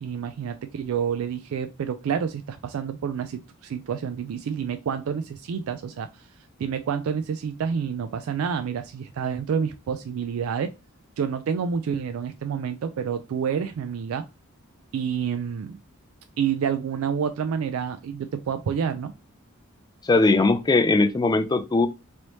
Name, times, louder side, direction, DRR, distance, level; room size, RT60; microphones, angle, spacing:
voice 1, 0.0-6.3 6.6-10.7 11.2-14.2 14.9-15.8 16.4-19.1, right 7 dB, 75° right, 0.3 m, -28 dB
voice 2, 20.0-21.9, left 3 dB, 20° left, 0.3 m, -20 dB
3.1 x 2.7 x 3.0 m
head